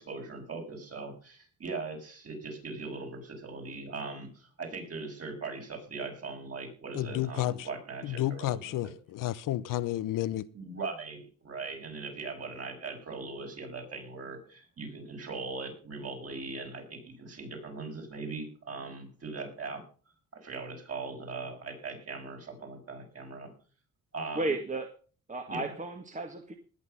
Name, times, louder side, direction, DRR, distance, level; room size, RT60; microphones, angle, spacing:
voice 1, 0.0-8.9 10.5-19.8 20.3-23.5 24.1-24.5 25.5-25.7, right 3 dB, 50° right, 6.5 m, -40 dB
voice 2, 6.9-7.7 8.0-10.5, left 14 dB, 80° left, 0.9 m, -31 dB
voice 3, 24.4-24.9 25.3-26.6, right 2 dB, 25° right, 1.9 m, -33 dB
19.5 x 8.5 x 5.5 m
cardioid pair, 85°, 32 cm